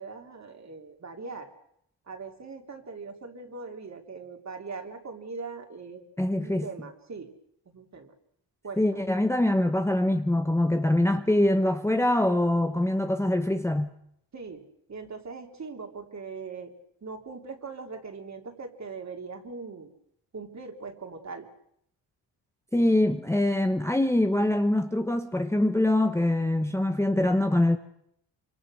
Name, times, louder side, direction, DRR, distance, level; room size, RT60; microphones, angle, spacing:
voice 1, 0.0-1.5 2.1-6.0 6.3-7.3 7.7-8.1 8.6-8.8 14.3-14.6 14.9-16.7 17.0-19.9 20.3-21.5, right 4 dB, 40° right, 3.3 m, -40 dB
voice 2, 6.2-6.7 8.8-13.9 22.7-27.8, left 1 dB, 5° left, 1.1 m, -24 dB
26.0 x 25.5 x 6.4 m
cardioid pair, 115°, 44 cm